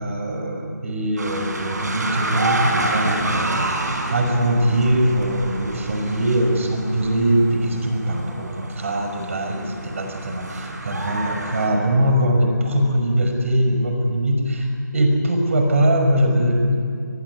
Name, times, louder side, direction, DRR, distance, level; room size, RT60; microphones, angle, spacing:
voice 1, 0.0-16.9, right 1 dB, 45° right, 3 dB, 5.7 m, -21 dB
sound 1, 1.2-11.7, right 2 dB, 65° right, 5.7 m, -28 dB
23.0 x 22.0 x 10.0 m, 2.3 s
figure-of-eight pair, 165°, 10 cm